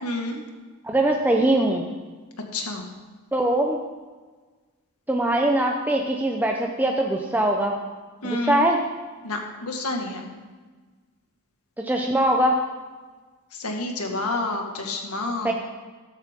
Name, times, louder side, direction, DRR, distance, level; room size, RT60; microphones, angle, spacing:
voice 1, 0.0-0.4 2.5-2.8 8.2-8.7 9.2-10.3 13.5-15.5, left 2 dB, 85° left, 2 dB, 1.9 m, -29 dB
voice 2, 0.8-1.8 3.3-3.8 5.1-7.7 8.2-8.8 11.8-12.6 15.4-15.5, right 1 dB, 10° right, 1 dB, 0.8 m, -22 dB
13.5 x 12.0 x 3.7 m, 1.4 s
head